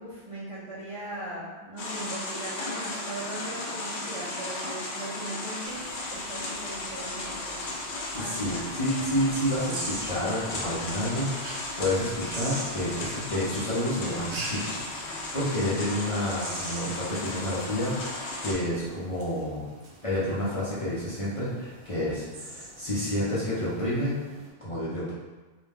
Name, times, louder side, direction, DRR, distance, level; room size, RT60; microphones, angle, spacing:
voice 1, 0.0-5.8 6.1-7.6 8.1-8.7 20.3-20.9, right 1 dB, 55° right, -8 dB, 0.4 m, -39 dB
sound 1, 1.8-18.5, left 2 dB, 75° left, 0.8 m, -35 dB
sound 2, 5.6-24.5, right 1 dB, 70° right, 0.9 m, -44 dB
voice 2, 8.1-14.6 14.9-19.6 20.0-24.2 24.6-25.1, left 1 dB, 40° left, -10 dB, 0.5 m, -29 dB
2.3 x 2.1 x 3.3 m, 1.3 s
omnidirectional pair, 1.2 m